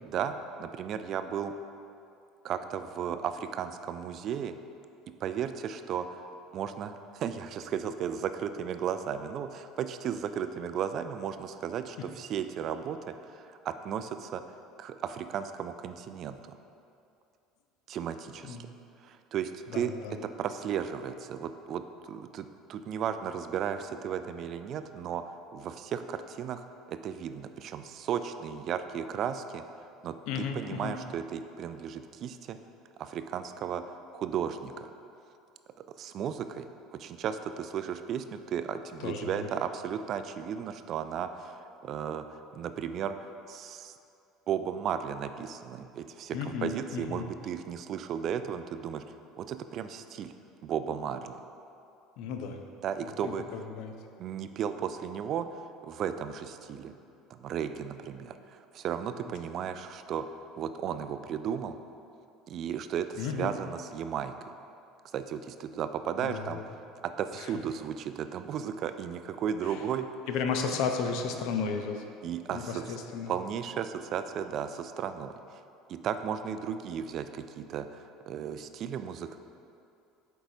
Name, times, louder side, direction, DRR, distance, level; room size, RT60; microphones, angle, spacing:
voice 1, 0.0-1.5 2.4-4.5 5.2-6.2 6.5-14.4 14.8-16.5 17.9-18.6 19.0-19.9 20.2-29.6 30.0-32.6 33.0-34.9 35.9-43.9 44.5-49.0 49.4-50.3 50.6-51.4 52.8-53.5 54.2-56.9 57.3-60.3 60.6-61.8 62.5-64.3 65.1-66.7 67.2-70.1 72.2-73.0 73.3-75.6 75.9-79.4, right 8 dB, 50° right, 10 dB, 0.3 m, -35 dB
voice 2, 19.7-20.2 30.3-31.0 39.0-39.5 46.3-47.3 52.2-52.6 53.1-53.9 63.2-63.5 66.2-66.6 67.4-67.5 69.6-69.8 70.3-72.1 72.5-73.3, left 5 dB, 65° left, 5 dB, 0.5 m, -34 dB
7.8 x 4.6 x 2.7 m, 2.6 s
hypercardioid pair, 70°, 0 cm